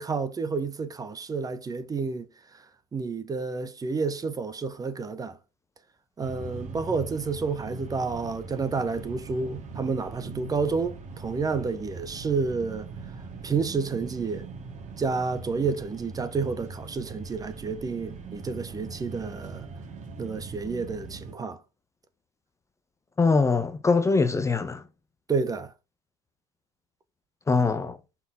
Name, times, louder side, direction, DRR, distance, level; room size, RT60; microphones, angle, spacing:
voice 1, 0.0-2.3 2.5-2.6 2.9-5.4 6.2-12.9 13.4-14.5 15.0-19.7 20.2-21.6 25.3-25.7, right 4 dB, 20° right, 1.0 m, -30 dB
sound 1, 6.2-21.3, right 4 dB, 40° right, 2.1 m, -41 dB
voice 2, 23.2-24.8 27.5-28.0, left 4 dB, 15° left, 0.7 m, -22 dB
5.7 x 3.9 x 5.5 m
hypercardioid pair, 90°, 18 cm